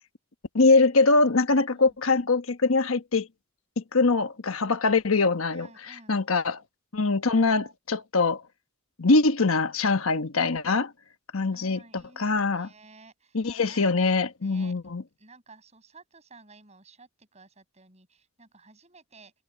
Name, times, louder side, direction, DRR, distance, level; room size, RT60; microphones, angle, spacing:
voice 1, 0.5-3.3 3.8-5.7 6.1-6.6 6.9-8.4 9.0-10.9 11.3-12.7 13.3-15.0, left 3 dB, 80° left, 1.1 m, -23 dB
voice 2, 5.5-6.2 11.5-13.8 14.4-14.7 15.2-19.3, right 3 dB, 30° right, 7.2 m, -53 dB
head